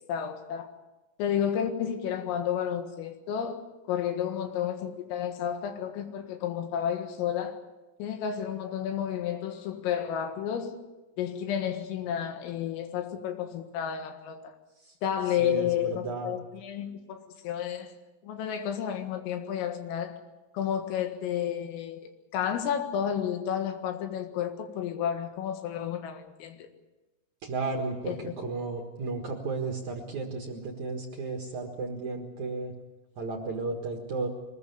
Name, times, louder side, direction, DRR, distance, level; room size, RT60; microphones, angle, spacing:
voice 1, 0.1-0.7 1.2-3.6 3.9-7.6 8.0-10.8 11.2-14.5 15.0-17.9 18.2-20.2 20.5-22.0 22.3-26.7 28.1-28.3, left 9 dB, 90° left, 4.4 m, -31 dB
voice 2, 15.3-16.3 27.4-32.7 33.2-34.3, right 3 dB, 60° right, 2.0 m, -34 dB
23.5 x 20.0 x 7.0 m
omnidirectional pair, 5.8 m